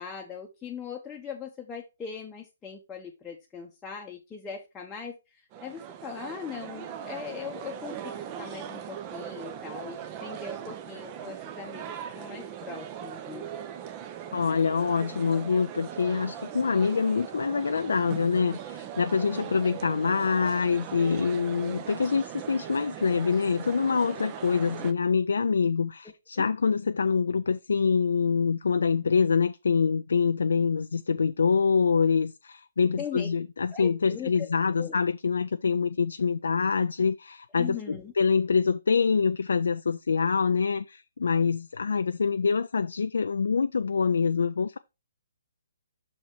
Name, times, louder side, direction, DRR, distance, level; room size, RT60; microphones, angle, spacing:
voice 1, 0.0-13.5 26.4-26.5 33.0-33.3 33.7-34.5 34.8-35.0 37.6-38.1, left 6 dB, 10° left, 0.9 m, -40 dB
sound 1, 5.5-24.9, right 9 dB, 25° right, 0.7 m, -40 dB
voice 2, 14.3-44.8, left 5 dB, 65° left, 0.3 m, -25 dB
6.3 x 4.2 x 4.4 m
figure-of-eight pair, 135°, 0 cm